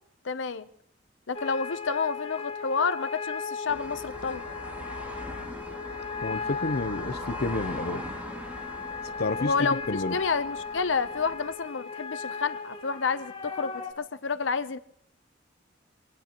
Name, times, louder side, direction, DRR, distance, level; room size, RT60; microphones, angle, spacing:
voice 1, 0.2-0.7 1.3-4.4 9.4-9.8 10.1-14.8, left 5 dB, 90° left, 0.8 m, -29 dB
sound 1, 1.3-13.9, left 5 dB, 30° left, 2.4 m, -37 dB
sound 2, 3.7-11.5, equal, 10° right, 2.4 m, -41 dB
voice 2, 6.2-8.0 9.2-9.5 9.9-10.2, left 3 dB, 60° left, 0.7 m, -30 dB
24.5 x 18.5 x 3.0 m
head